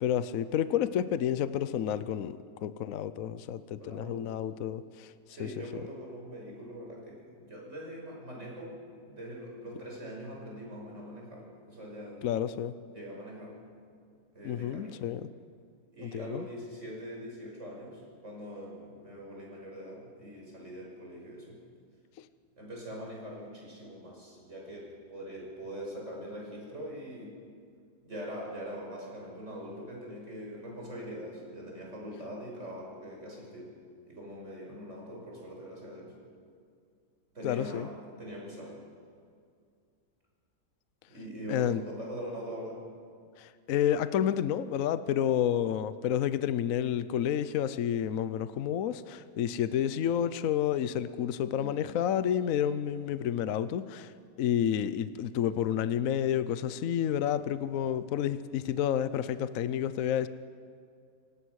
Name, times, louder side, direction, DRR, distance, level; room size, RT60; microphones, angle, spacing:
voice 1, 0.0-5.1 5.4-5.8 12.2-12.7 14.4-15.3 16.0-16.5 22.2-22.3 37.4-37.9 41.5-41.8 43.4-54.1 54.4-60.3, left 10 dB, 60° left, 13 dB, 1.0 m, -30 dB
voice 2, 3.8-4.3 5.3-8.7 9.0-12.2 12.9-13.6 14.3-15.1 15.9-21.6 22.6-27.4 28.0-33.7 34.1-36.1 37.3-37.9 38.2-38.8 41.1-42.8 51.5-51.8, equal, 45° right, -2 dB, 6.4 m, -42 dB
28.0 x 17.0 x 6.4 m, 2.3 s
omnidirectional pair, 1.8 m